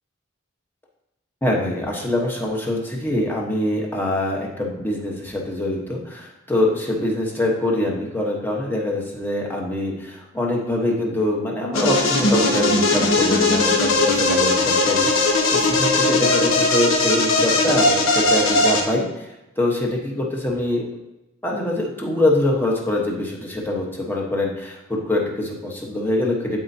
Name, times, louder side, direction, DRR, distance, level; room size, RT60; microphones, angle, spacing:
voice 1, 1.4-19.3 19.6-20.8 21.4-26.6, left 1 dB, 10° left, -1 dB, 1.0 m, -24 dB
sound 1, 11.7-18.8, left 2 dB, 90° left, 1.2 m, -19 dB
12.5 x 4.4 x 2.7 m, 0.95 s
head